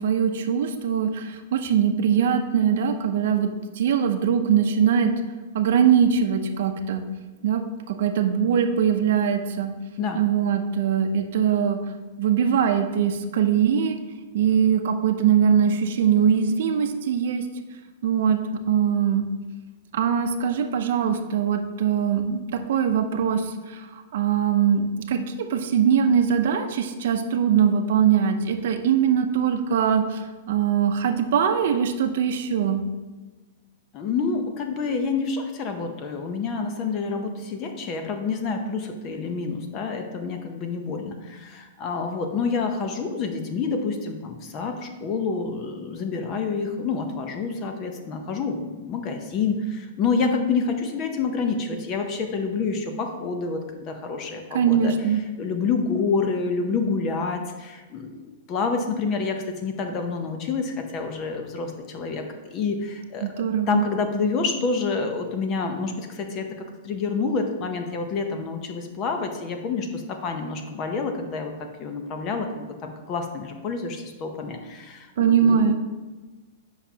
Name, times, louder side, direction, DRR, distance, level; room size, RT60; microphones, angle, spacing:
voice 1, 0.0-3.5 3.8-5.1 5.5-7.0 7.4-7.6 7.9-9.7 10.1-11.8 12.2-14.0 14.3-17.4 18.0-18.4 18.7-19.2 19.9-22.4 22.7-23.4 24.1-30.2 30.5-32.8 54.5-55.2 63.2-63.8 75.2-75.7, right 8 dB, 60° right, 7 dB, 0.6 m, -21 dB
voice 2, 33.9-54.9 55.4-62.2 62.5-66.5 66.8-71.5 71.8-75.7, left 4 dB, 30° left, 5 dB, 0.7 m, -28 dB
8.1 x 5.6 x 2.8 m, 1.2 s
supercardioid pair, 160°, 0 cm